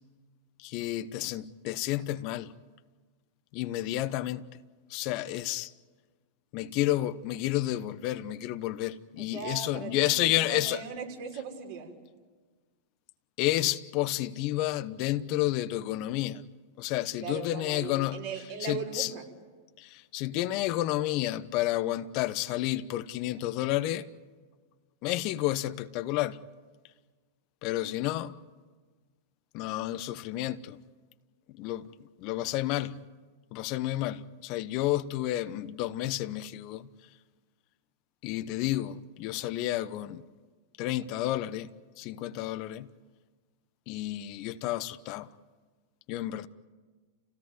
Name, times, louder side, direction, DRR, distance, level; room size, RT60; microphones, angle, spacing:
voice 1, 0.6-2.5 3.5-4.4 4.9-5.7 6.5-10.8 13.4-16.4 16.8-18.2 18.6-19.1 19.8-24.1 25.0-26.4 27.6-28.3 29.5-30.8 31.6-31.9 32.2-33.0 33.5-36.9 38.2-40.2 40.8-41.7 42.0-42.9 43.9-45.3 46.1-46.5, left 15 dB, 50° left, 0.9 m, -30 dB
voice 2, 9.2-11.9 17.2-19.3, right 6 dB, 55° right, 6.0 m, -39 dB
29.5 x 17.0 x 9.6 m
hypercardioid pair, 95°, 0 cm